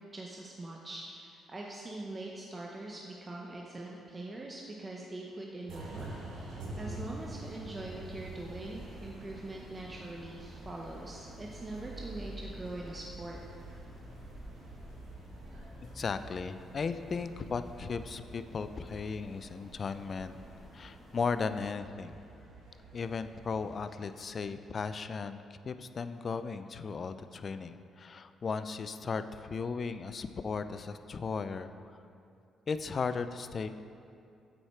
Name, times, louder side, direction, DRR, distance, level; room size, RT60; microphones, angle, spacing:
voice 1, 0.0-6.1 6.4-13.4, right 2 dB, 25° right, -2 dB, 0.7 m, -43 dB
sound 1, 5.7-24.4, right 1 dB, 85° right, 1.7 m, -47 dB
sound 2, 7.0-21.6, equal, 20° left, 1.3 m, -54 dB
voice 2, 15.9-20.4 20.7-22.2 22.9-31.7 32.7-33.7, left 5 dB, 45° left, 11 dB, 0.3 m, -36 dB
7.7 x 4.8 x 4.3 m, 2.5 s
cardioid pair, 90°, 0 cm